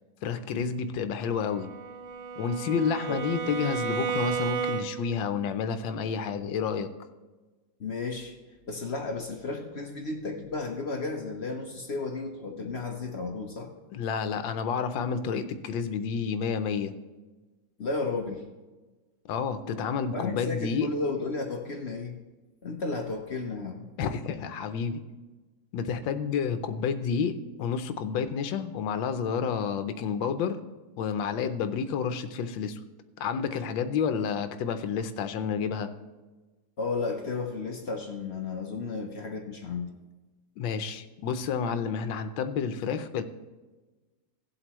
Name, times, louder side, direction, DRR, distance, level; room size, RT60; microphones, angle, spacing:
voice 1, 0.2-1.7 2.4-6.9 13.9-16.9 19.3-20.9 24.0-25.0 25.7-30.6 31.0-32.8 33.2-35.9 40.6-43.2, left 6 dB, 80° left, 9 dB, 1.5 m, -30 dB
Bowed string instrument, 1.3-5.2, right 6 dB, 85° right, 2.1 m, -33 dB
voice 2, 7.8-8.4 8.7-13.7 17.8-18.5 20.1-22.2 22.6-23.9 36.8-39.9, left 3 dB, 45° left, 3 dB, 0.9 m, -33 dB
17.0 x 7.8 x 3.1 m, 1.2 s
omnidirectional pair, 2.1 m